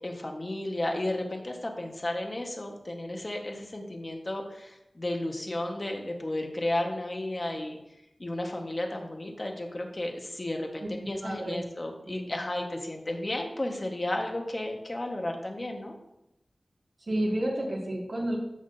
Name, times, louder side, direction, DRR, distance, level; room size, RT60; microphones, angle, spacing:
voice 1, 0.0-7.8 8.2-16.0, left 1 dB, 35° left, 2 dB, 1.5 m, -33 dB
voice 2, 11.2-11.6 12.0-12.3 17.1-18.4, right 1 dB, 60° right, -4 dB, 2.1 m, -30 dB
14.0 x 6.1 x 2.8 m, 0.87 s
wide cardioid pair, 75°, 0 cm